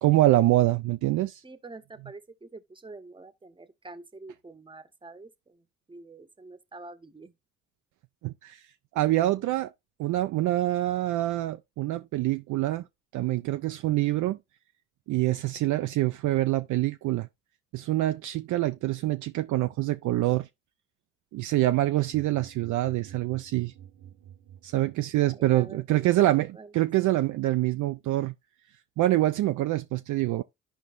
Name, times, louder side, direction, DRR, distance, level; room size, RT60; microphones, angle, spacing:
voice 1, 0.0-1.4 8.2-8.6 8.9-9.7 10.0-12.8 13.1-14.4 15.1-17.3 17.7-20.5 21.3-23.7 24.6-28.3 29.0-30.4, right 16 dB, 50° right, 0.5 m, -25 dB
voice 2, 1.4-7.3 25.2-26.7, right 3 dB, 15° right, 0.9 m, -46 dB
sound 1, 22.0-25.3, right 10 dB, 70° right, 1.1 m, -49 dB
12.5 x 4.9 x 2.5 m
hypercardioid pair, 55°, 38 cm